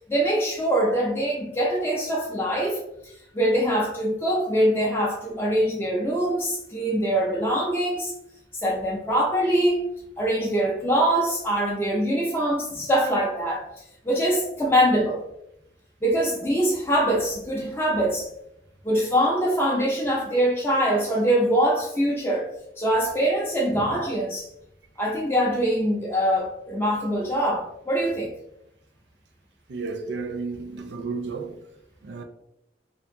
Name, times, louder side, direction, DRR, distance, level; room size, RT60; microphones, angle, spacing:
voice 1, 0.1-8.1 8.6-9.8 10.2-15.2 16.0-18.3 18.8-22.5 22.8-24.5 25.0-28.3, equal, 15° left, 0.3 m, -23 dB
voice 2, 29.7-31.6 32.0-32.2, right 4 dB, 80° right, 0.4 m, -32 dB
2.8 x 2.5 x 2.5 m
head